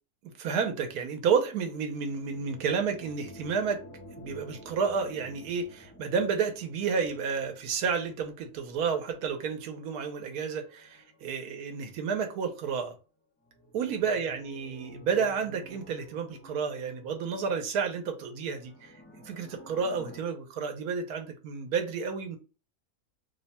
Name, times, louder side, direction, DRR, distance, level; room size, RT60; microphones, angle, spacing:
voice 1, 0.2-3.8 4.2-12.9 13.7-19.0 19.2-22.4, right 6 dB, 85° right, 1.2 m, -31 dB
sound 1, 1.5-12.3 13.4-20.2, equal, 10° left, 0.6 m, -52 dB
3.0 x 2.2 x 4.1 m
omnidirectional pair, 1.6 m